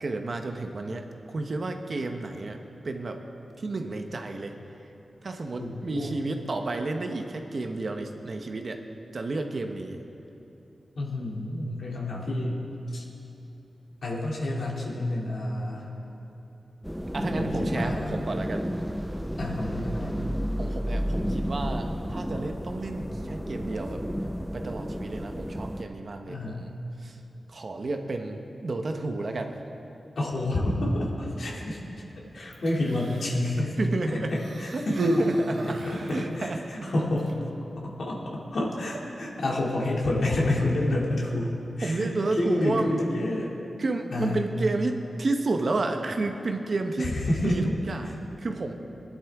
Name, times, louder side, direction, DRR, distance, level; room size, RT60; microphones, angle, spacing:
voice 1, 0.0-2.6 2.8-3.2 3.6-4.5 4.8-4.9 5.2-8.8 9.1-10.0 11.7-11.9 17.1-18.7 20.6-24.0 24.5-27.2 27.5-29.5 33.8-34.3 34.7-35.8 36.1-36.9 41.8-43.0 43.8-47.2 47.4-48.7, right 2 dB, 55° right, 5 dB, 1.0 m, -31 dB
voice 2, 5.6-6.1 11.0-13.0 14.0-15.9 17.4-18.2 19.4-20.2 26.3-26.7 30.2-31.8 32.1-33.8 34.1-35.3 35.6-37.4 37.8-43.5 44.1-44.4 47.0-47.6, left 1 dB, 75° left, -3 dB, 2.5 m, -29 dB
sound 1, 16.8-25.8, equal, ahead, 0.6 m, -31 dB
Human voice, 32.5-33.4 34.3-36.3 37.2-37.3, right 1 dB, 80° right, 1.5 m, -30 dB
20.0 x 11.0 x 3.6 m, 3.0 s
wide cardioid pair, 85°, 0 cm